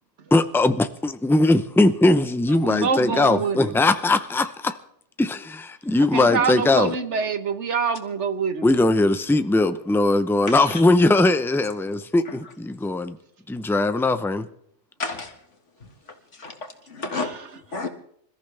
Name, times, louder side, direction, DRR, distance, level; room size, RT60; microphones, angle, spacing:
voice 1, 0.3-4.8 5.2-6.9 8.6-13.2 13.5-14.5, left 2 dB, ahead, 0.6 m, -20 dB
voice 2, 2.5-3.7 6.1-8.7 17.2-17.4, right 5 dB, 75° right, 1.6 m, -25 dB
voice 3, 10.5-10.8 12.3-12.4 15.0-15.4 15.8-15.9 16.3-17.3 17.7-17.9, left 3 dB, 80° left, 2.3 m, -31 dB
26.5 x 14.0 x 3.4 m
omnidirectional pair, 1.2 m